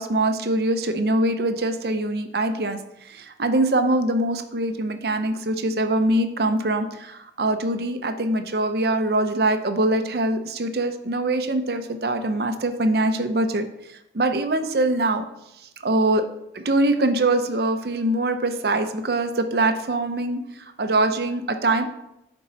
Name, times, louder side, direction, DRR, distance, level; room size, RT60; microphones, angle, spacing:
voice 1, 0.0-2.8 3.0-15.3 15.8-16.2 16.5-21.8, right 2 dB, 55° right, 8 dB, 0.7 m, -23 dB
11.0 x 4.6 x 4.0 m, 0.85 s
head